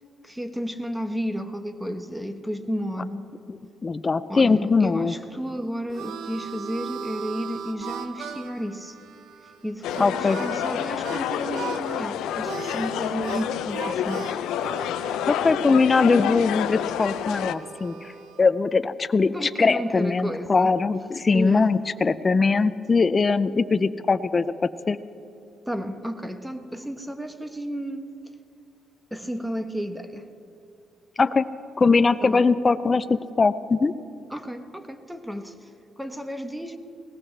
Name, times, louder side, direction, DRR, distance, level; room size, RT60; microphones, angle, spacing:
voice 1, 0.2-3.3 4.3-9.0 9.6-14.3 19.3-20.8 21.3-21.7 25.7-28.0 29.1-30.3 32.2-32.4 34.3-35.7 36.0-36.8, equal, 5° right, 8 dB, 1.0 m, -32 dB
voice 2, 3.5-5.1 10.0-10.4 15.3-18.1 18.4-24.4 24.9-25.0 31.2-31.5 31.8-33.9, left 4 dB, 30° left, 13 dB, 0.4 m, -21 dB
Harmonica, 5.4-11.2 11.5-12.0 12.4-18.4, right 6 dB, 80° right, 0.9 m, -38 dB
sound 1, 9.8-17.5, left 10 dB, 85° left, 0.4 m, -29 dB
20.0 x 18.0 x 3.3 m, 2.6 s
cardioid pair, 90°, 0 cm